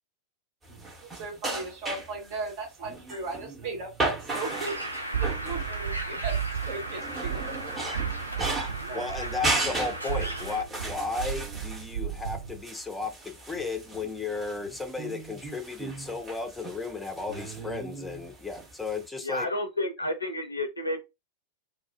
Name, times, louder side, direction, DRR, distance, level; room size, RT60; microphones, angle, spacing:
sound 1, 0.6-19.1, right 2 dB, 20° right, 1.0 m, -36 dB
voice 1, 1.0-4.8 5.2-6.4 6.6-7.6 8.8-9.0, right 3 dB, 50° right, 1.1 m, -37 dB
Bird, 4.3-10.6, right 1 dB, 90° right, 0.4 m, -37 dB
sound 2, 5.1-12.6, right 8 dB, 70° right, 0.9 m, -34 dB
voice 2, 8.9-19.5, left 4 dB, 10° left, 0.6 m, -34 dB
voice 3, 19.2-21.0, left 1 dB, 80° left, 0.5 m, -30 dB
2.3 x 2.3 x 2.6 m
figure-of-eight pair, 90°, 0 cm